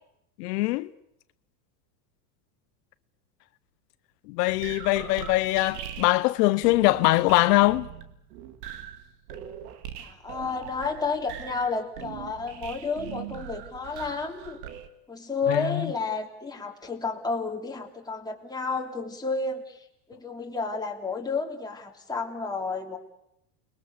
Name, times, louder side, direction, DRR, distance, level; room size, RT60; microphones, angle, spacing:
voice 1, 0.4-0.9 4.3-7.9 15.5-15.8, left 19 dB, 75° left, 0.9 m, -22 dB
sound 1, 4.5-14.9, right 10 dB, 75° right, 2.5 m, -41 dB
voice 2, 10.0-14.6 15.1-23.0, left 4 dB, 10° left, 3.3 m, -31 dB
29.5 x 22.0 x 6.8 m
supercardioid pair, 135°, 48 cm